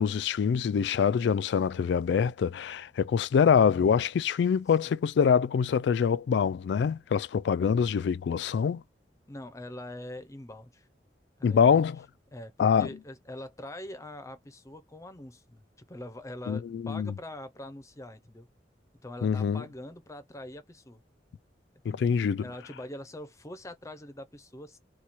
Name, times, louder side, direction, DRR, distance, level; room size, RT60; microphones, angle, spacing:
voice 1, 0.0-8.8 11.4-12.0 12.6-12.9 16.5-17.1 19.2-19.6 21.9-22.4, left 7 dB, 70° left, 0.3 m, -25 dB
voice 2, 9.3-10.9 11.4-11.9 12.3-18.5 19.0-21.0 21.9-24.8, left 1 dB, 20° left, 0.6 m, -43 dB
4.2 x 2.3 x 4.5 m
head